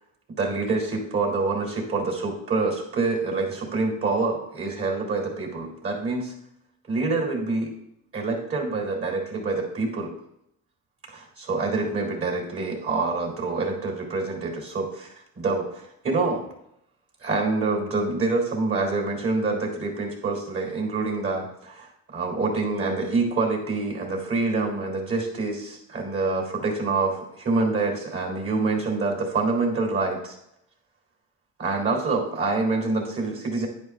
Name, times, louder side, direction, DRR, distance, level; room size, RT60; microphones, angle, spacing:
voice 1, 0.4-6.3 6.9-7.7 8.1-10.1 11.1-16.5 17.2-30.4 31.6-33.7, right 3 dB, 45° right, 1 dB, 3.9 m, -26 dB
10.5 x 9.9 x 2.6 m, 0.75 s
cardioid pair, 90°, 30 cm